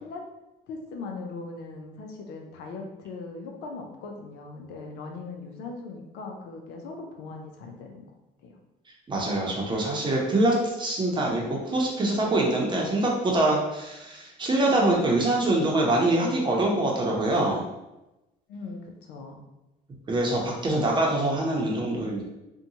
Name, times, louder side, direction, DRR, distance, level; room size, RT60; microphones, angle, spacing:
voice 1, 0.7-8.0 8.4-8.5 18.5-19.4, left 3 dB, 85° left, 2 dB, 0.5 m, -39 dB
voice 2, 9.1-17.7 20.1-22.2, right 2 dB, 25° right, -2 dB, 0.7 m, -24 dB
2.6 x 2.2 x 2.7 m, 0.97 s
cardioid pair, 110°, 17 cm